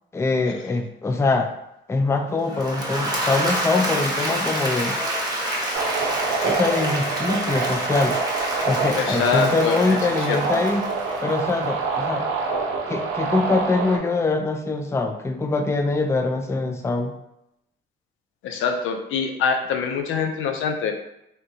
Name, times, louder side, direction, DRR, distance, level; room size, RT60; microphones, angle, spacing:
voice 1, 0.1-1.5 1.9-5.0 6.4-8.2 8.7-10.8 11.2-12.3 12.9-17.1, left 3 dB, 15° left, 5 dB, 0.4 m, -23 dB
Applause / Crowd, 2.4-11.6, right 1 dB, 20° right, 1.0 m, -28 dB
sound 1, 5.7-14.0, right 4 dB, 80° right, 0.6 m, -26 dB
voice 2, 9.0-10.6 18.4-20.9, left 5 dB, 85° left, 4 dB, 0.5 m, -25 dB
3.6 x 2.7 x 2.6 m, 0.84 s
cardioid pair, 90°, 20 cm